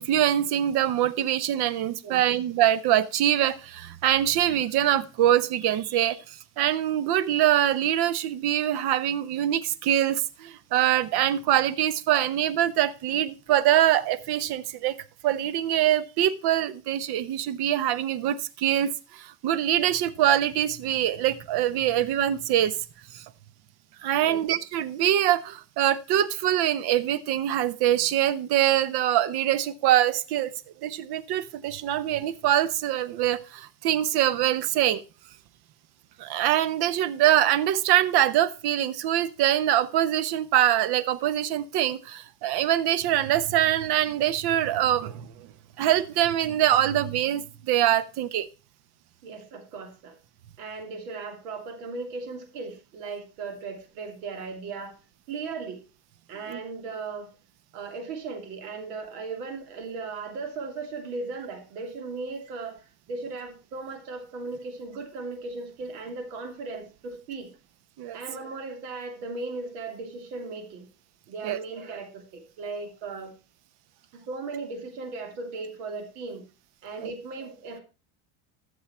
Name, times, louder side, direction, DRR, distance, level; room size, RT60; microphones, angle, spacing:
voice 1, 0.0-15.0 15.2-22.8 23.1-23.2 24.0-30.5 30.8-35.0 36.2-45.5 45.8-48.5 56.5-56.6 68.0-68.2 71.4-71.6 77.0-77.1, right 12 dB, 55° right, 1.0 m, -24 dB
voice 2, 49.2-50.1 50.6-55.0 55.3-55.8 56.3-57.3 57.7-62.8 63.1-67.5 68.1-70.9 71.3-73.3 74.1-76.4 76.8-77.8, right 4 dB, 80° right, 2.9 m, -37 dB
13.5 x 6.7 x 4.3 m
supercardioid pair, 95°, 45 cm